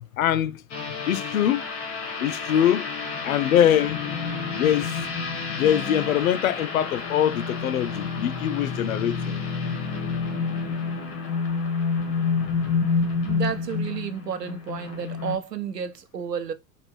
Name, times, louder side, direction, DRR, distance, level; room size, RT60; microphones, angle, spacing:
voice 1, 0.1-0.6 1.1-1.6 2.2-2.9 3.2-4.0 4.5-5.0 5.5-9.4, left 10 dB, 60° left, 0.5 m, -23 dB
sound 1, 0.7-15.3, left 5 dB, 30° left, 1.5 m, -29 dB
voice 2, 13.2-16.5, right 7 dB, 80° right, 0.9 m, -31 dB
5.0 x 2.5 x 3.1 m
figure-of-eight pair, 95°, 48 cm